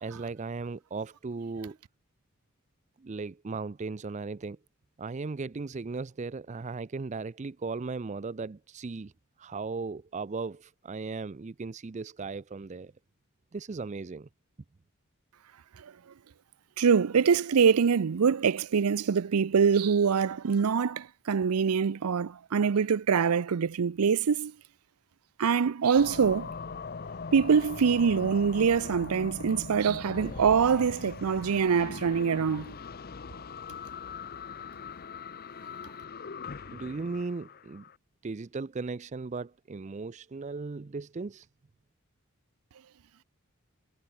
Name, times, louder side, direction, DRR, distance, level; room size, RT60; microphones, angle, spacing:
voice 1, 0.0-1.8 3.0-4.6 5.0-9.1 9.4-12.9 13.5-14.3 36.7-37.8 38.2-41.5, right 4 dB, 30° right, 0.4 m, -37 dB
voice 2, 16.8-24.5 25.4-26.5 27.3-32.7, right 6 dB, 85° right, 0.5 m, -24 dB
sound 1, 26.0-37.9, left 5 dB, 45° left, 0.6 m, -41 dB
head